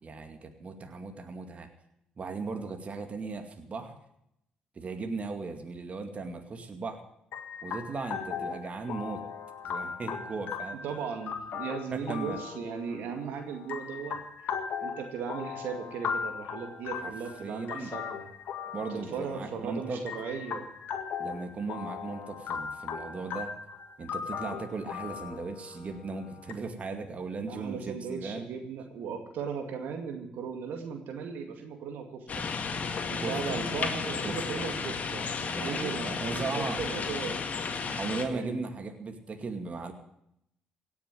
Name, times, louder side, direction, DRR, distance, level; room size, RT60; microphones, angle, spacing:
voice 1, 0.0-1.7 2.2-4.0 4.8-7.0 7.6-9.2 9.6-10.8 11.9-12.4 17.0-17.1 17.4-17.9 18.7-20.0 21.2-23.5 24.0-28.5 33.2-33.6 34.2-34.7 35.4-36.8 38.0-39.9, right 4 dB, 40° right, 5 dB, 2.3 m, -37 dB
sound 1, 7.3-26.5, left 6 dB, 65° left, 1.9 m, -38 dB
voice 2, 10.8-14.2 14.8-18.3 18.9-20.7 27.5-32.4 33.1-35.3 35.6-37.5 38.3-38.5, right 6 dB, 70° right, 4 dB, 2.2 m, -37 dB
sound 2, 32.3-38.2, left 5 dB, 45° left, 2.0 m, -33 dB
17.0 x 7.2 x 9.0 m, 0.76 s
supercardioid pair, 60°, 3 cm